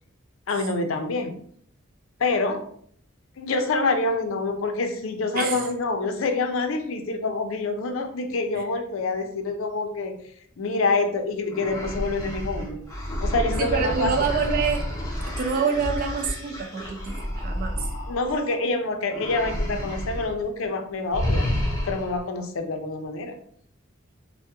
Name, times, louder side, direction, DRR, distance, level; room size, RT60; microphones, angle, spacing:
voice 1, 0.5-1.3 2.2-2.6 3.4-10.1 10.6-12.8 13.2-14.1 18.1-21.5 21.8-23.3, left 3 dB, 70° left, 5 dB, 0.5 m, -26 dB
voice 2, 5.3-5.7 8.6-8.7 13.6-14.9 15.3-17.9, right 5 dB, 45° right, 5 dB, 0.4 m, -27 dB
sound 1, 11.5-18.7 19.1-20.3 20.6-20.8 21.1-22.2, left 1 dB, 15° left, 0.6 m, -30 dB
2.9 x 2.1 x 3.3 m, 0.62 s
head